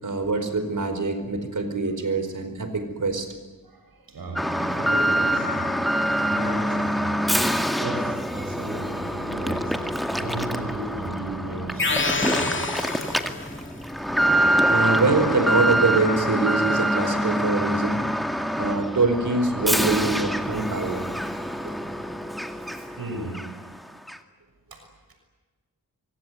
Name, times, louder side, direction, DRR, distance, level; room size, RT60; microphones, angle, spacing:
voice 1, 0.0-3.3 14.7-18.0 18.6-21.1 21.6-21.7, right 3 dB, 55° right, 4.9 m, -24 dB
voice 2, 3.6-12.7 18.7-18.9 19.5-19.9 20.7-21.5 22.6-23.7 24.7-24.8, right 2 dB, 85° right, 6.6 m, -36 dB
Alarm, 4.4-23.0 23.3-23.5 24.1-24.2, equal, ahead, 2.0 m, -25 dB
sound 1, 11.8-13.7, left 3 dB, 35° left, 2.1 m, -27 dB
25.0 x 24.5 x 9.4 m
wide cardioid pair, 85°, 35 cm